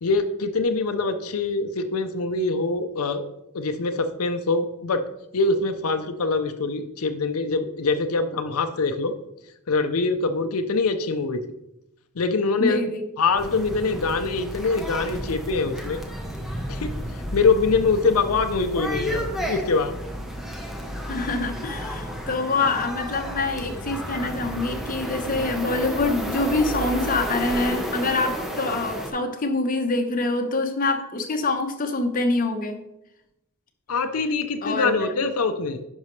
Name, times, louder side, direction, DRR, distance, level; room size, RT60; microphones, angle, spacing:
voice 1, 0.0-3.3 3.5-5.0 5.3-9.1 9.7-11.4 12.2-12.9 13.2-16.0 16.7-16.9 17.3-19.9 33.9-35.8, left 3 dB, 80° left, 7 dB, 0.6 m, -24 dB
voice 2, 12.6-13.0 21.1-32.8 34.6-35.1, left 3 dB, 40° left, 4 dB, 1.0 m, -25 dB
sound 1, 13.4-29.1, equal, ahead, 1.0 m, -32 dB
10.5 x 5.4 x 3.2 m, 0.85 s
head